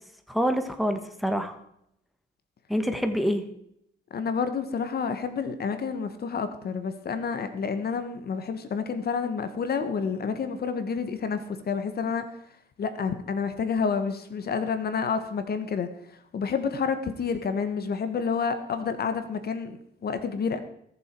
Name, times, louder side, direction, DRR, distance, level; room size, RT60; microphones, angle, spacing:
voice 1, 0.3-1.6 2.7-3.4, equal, ahead, 7 dB, 1.5 m, -26 dB
voice 2, 4.1-12.3 12.8-20.6, left 5 dB, 50° left, 10 dB, 1.4 m, -29 dB
19.5 x 7.2 x 4.6 m, 0.74 s
cardioid pair, 90°, 20 cm